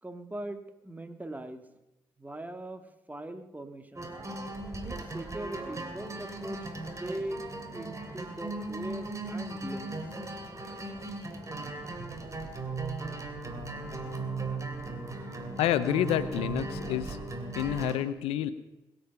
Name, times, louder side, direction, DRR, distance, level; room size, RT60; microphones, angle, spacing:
voice 1, 0.0-1.6 2.2-2.8 3.1-4.1 4.8-7.4 7.7-10.0, right 1 dB, 15° right, 8 dB, 1.9 m, -40 dB
sound 1, 4.0-18.0, right 2 dB, 30° right, 2.8 m, -37 dB
voice 2, 15.6-17.2 17.5-18.5, left 12 dB, 85° left, 14 dB, 0.7 m, -28 dB
21.5 x 8.6 x 5.8 m, 0.94 s
supercardioid pair, 50°, 10 cm